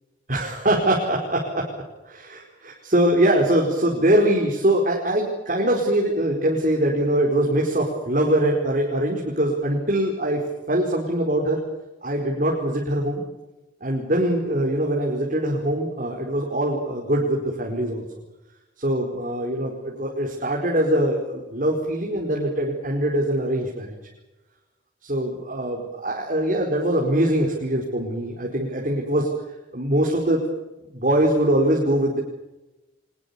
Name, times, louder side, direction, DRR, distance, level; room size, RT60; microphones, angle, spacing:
voice 1, 0.3-1.7 2.0-11.6 12.0-13.2 13.8-18.1 18.8-24.0 25.0-29.3 29.7-30.4 30.9-32.2, right 1 dB, 50° right, -1 dB, 4.8 m, -23 dB
24.5 x 20.5 x 7.1 m, 1.0 s
head